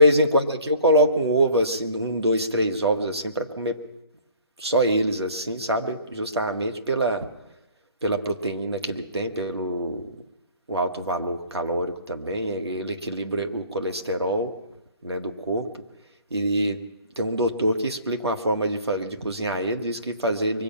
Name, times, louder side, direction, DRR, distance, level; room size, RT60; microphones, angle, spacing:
voice 1, 0.0-3.8 4.6-7.3 8.0-10.2 10.7-14.5 15.0-15.8 16.3-16.8 17.2-20.6, right 1 dB, 80° right, 5 dB, 1.8 m, -24 dB
24.0 x 8.7 x 5.8 m, 0.94 s
figure-of-eight pair, 150°, 13 cm